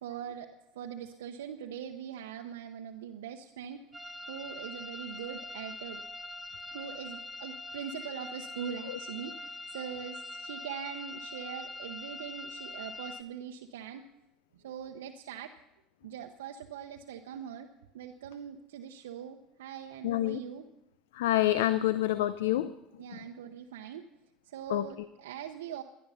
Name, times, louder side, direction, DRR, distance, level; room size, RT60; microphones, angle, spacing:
voice 1, 0.0-3.8 4.3-6.0 6.7-14.1 14.5-15.5 16.0-20.7 23.0-24.1 24.5-25.8, right 8 dB, 75° right, 3 dB, 0.8 m, -42 dB
sound 1, 3.9-13.2, left 2 dB, 15° right, 1.0 m, -43 dB
voice 2, 20.0-20.4 21.1-22.7 24.7-24.9, left 14 dB, 75° left, 15 dB, 0.5 m, -27 dB
18.0 x 11.0 x 5.6 m, 0.90 s
hypercardioid pair, 75°, 0 cm